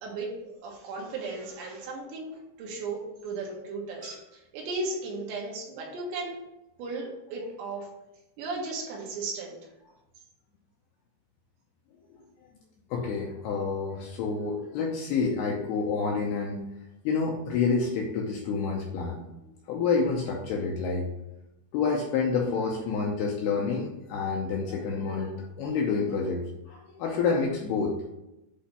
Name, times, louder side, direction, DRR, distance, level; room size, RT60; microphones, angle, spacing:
voice 1, 0.0-6.4 6.8-7.9 8.4-9.6, right 3 dB, 75° right, -1 dB, 3.4 m, -36 dB
voice 2, 12.9-16.6 17.0-19.2 19.7-21.1 21.7-27.9, left 5 dB, 80° left, -1 dB, 2.4 m, -28 dB
8.4 x 2.8 x 5.7 m, 0.94 s
omnidirectional pair, 5.3 m